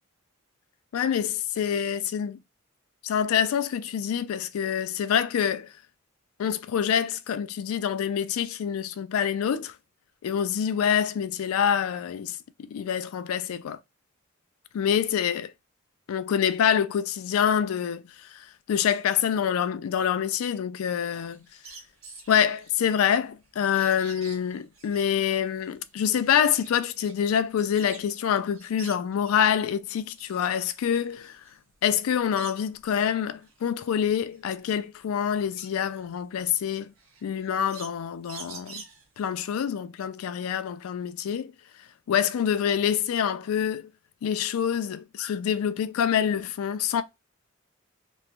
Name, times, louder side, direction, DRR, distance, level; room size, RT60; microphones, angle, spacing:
voice 1, 0.9-2.4 3.0-5.7 6.4-9.7 10.2-13.8 14.7-15.5 16.1-21.4 22.3-31.4 31.8-36.9 37.2-38.8 39.2-41.5 42.1-43.9 44.2-47.0, left 8 dB, 85° left, 0.3 m, -26 dB
sound 1, 21.0-28.2 28.5-29.5 29.9-32.9 33.3-39.3, right 4 dB, 75° right, 0.8 m, -48 dB
3.0 x 2.3 x 2.4 m
head